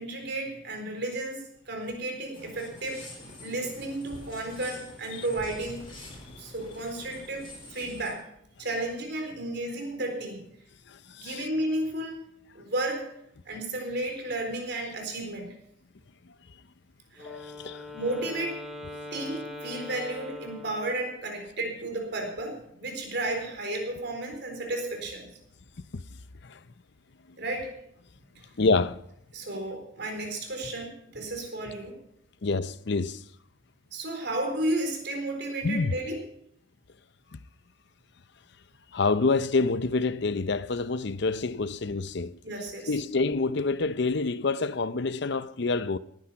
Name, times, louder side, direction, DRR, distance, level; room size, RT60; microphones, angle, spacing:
voice 1, 0.0-5.9 6.4-8.2 8.6-10.4 11.2-12.2 12.5-13.0 13.5-15.5 17.1-17.3 17.9-18.6 19.1-25.3 27.4-27.7 29.3-32.0 33.9-36.2 42.4-42.9, right 1 dB, 60° right, 4.1 m, -33 dB
sound 1, 2.3-8.1, left 1 dB, 30° left, 4.5 m, -46 dB
voice 2, 10.9-11.4 17.2-17.9 25.9-26.0 26.4-26.6 28.6-29.0 32.4-33.2 35.6-35.9 37.3-37.4 38.9-42.4 42.9-46.0, left 3 dB, 60° left, 0.6 m, -27 dB
Wind instrument woodwind instrument, 17.2-21.3, left 2 dB, ahead, 2.1 m, -42 dB
19.0 x 10.0 x 5.8 m
head